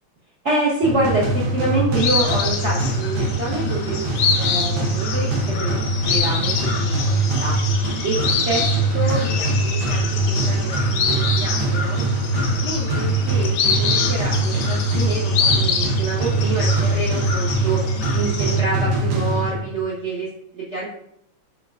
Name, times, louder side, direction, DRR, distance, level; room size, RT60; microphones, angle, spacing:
voice 1, 0.4-7.6 8.0-8.7 8.9-12.0 12.6-17.8 18.1-20.9, right 2 dB, 60° right, -7 dB, 0.7 m, -27 dB
sound 1, 0.8-19.8, right 2 dB, 85° right, 1.9 m, -22 dB
sound 2, 2.0-18.6, left 6 dB, 85° left, 1.5 m, -26 dB
5.9 x 3.6 x 2.4 m, 0.73 s
omnidirectional pair, 2.4 m